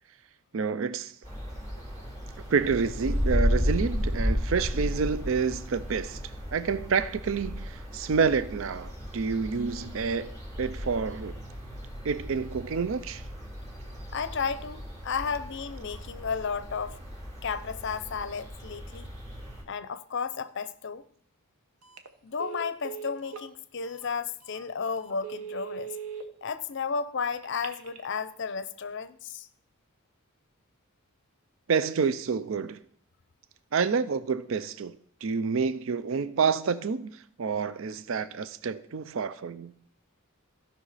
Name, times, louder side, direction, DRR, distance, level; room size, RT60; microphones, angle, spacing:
voice 1, 0.5-1.1 2.5-6.2 6.5-10.3 10.6-11.4 12.0-13.2 31.7-32.8 33.7-39.7, right 5 dB, 60° right, 0.5 m, -28 dB
sound 1, 1.2-19.6, equal, 30° right, 2.7 m, -34 dB
voice 2, 14.1-17.0 17.4-19.1 19.7-21.0 22.2-25.9 26.4-29.5, left 5 dB, 55° left, 0.5 m, -33 dB
Telephone, 21.8-22.1 22.4-23.5 24.0-24.1 24.5-24.6 25.1-26.2 27.4-28.0, right 8 dB, 90° right, 1.0 m, -39 dB
16.0 x 5.6 x 4.1 m
head